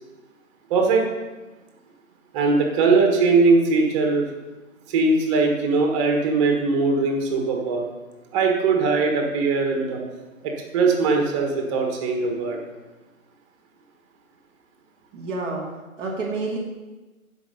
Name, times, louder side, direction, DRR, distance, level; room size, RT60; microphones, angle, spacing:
voice 1, 0.7-1.0 2.3-4.3 4.9-7.9 8.3-10.0 10.4-12.6, right 4 dB, 20° right, 1 dB, 1.4 m, -20 dB
voice 2, 15.1-15.6 16.0-16.6, right 3 dB, 5° right, -10 dB, 0.9 m, -28 dB
13.5 x 5.4 x 5.3 m, 1.2 s
figure-of-eight pair, 145°, 41 cm